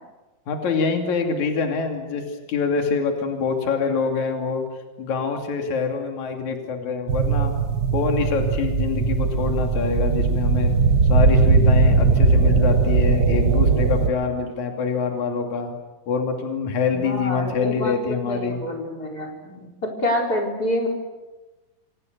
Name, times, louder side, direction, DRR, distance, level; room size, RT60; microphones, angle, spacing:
voice 1, 0.5-4.6 5.0-7.6 7.9-10.7 11.1-15.7 16.1-18.6, left 5 dB, 55° left, 3 dB, 3.9 m, -25 dB
sound 1, 7.1-14.1, right 4 dB, 70° right, 0.9 m, -19 dB
voice 2, 16.9-20.9, left 1 dB, 25° left, 0 dB, 4.8 m, -27 dB
27.0 x 27.0 x 6.8 m, 1.1 s
omnidirectional pair, 4.2 m